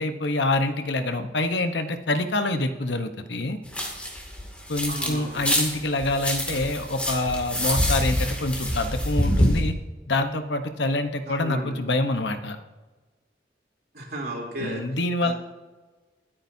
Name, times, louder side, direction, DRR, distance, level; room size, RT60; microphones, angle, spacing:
voice 1, 0.0-3.6 4.7-9.8 10.1-12.6 14.6-15.3, left 2 dB, 75° left, 8 dB, 1.0 m, -26 dB
sound 1, 3.7-5.1 5.4-9.6, equal, 5° left, 2.4 m, -26 dB
voice 2, 4.9-5.4 11.3-11.7 13.9-14.8 15.2-15.3, right 1 dB, 55° right, -2 dB, 3.3 m, -34 dB
24.5 x 8.9 x 2.8 m, 1.3 s
head